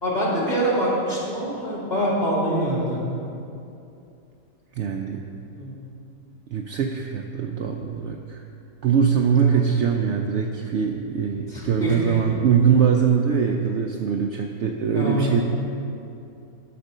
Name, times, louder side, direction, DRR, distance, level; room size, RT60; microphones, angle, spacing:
voice 1, 0.0-3.0 5.5-5.7 9.3-9.6 11.5-12.2 14.9-15.3, equal, 30° left, -6 dB, 2.3 m, -25 dB
voice 2, 4.7-5.3 6.5-8.4 8.8-15.4, right 7 dB, 65° right, 3 dB, 0.7 m, -22 dB
11.0 x 4.3 x 6.6 m, 2.6 s
omnidirectional pair, 1.5 m